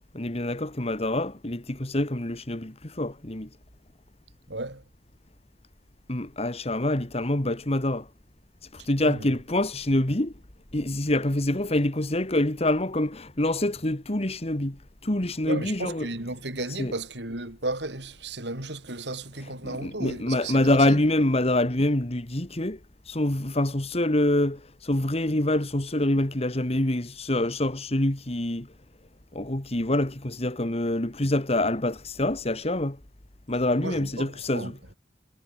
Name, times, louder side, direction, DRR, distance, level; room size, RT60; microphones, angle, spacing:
voice 1, 0.1-3.5 6.1-8.1 8.6-10.3 10.7-16.1 16.8-16.9 19.4-22.8 23.0-28.7 29.3-33.0 33.5-34.8, left 1 dB, 35° left, 2.0 m, -26 dB
voice 2, 4.5-4.8 9.0-9.4 15.5-21.0 33.8-34.7, right 2 dB, 80° right, 7.6 m, -34 dB
head